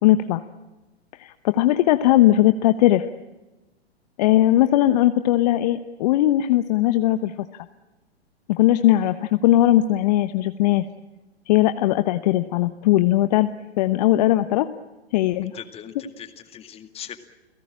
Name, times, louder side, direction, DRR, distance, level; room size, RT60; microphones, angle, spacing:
voice 1, 0.0-0.4 1.1-3.1 4.2-7.7 8.5-10.8 11.5-13.5 13.8-14.7 15.1-15.5, left 14 dB, 40° left, 10 dB, 1.0 m, -19 dB
voice 2, 15.5-17.2, left 9 dB, 20° left, 9 dB, 2.1 m, -40 dB
30.0 x 17.5 x 8.8 m, 1.1 s
figure-of-eight pair, 115°, 32 cm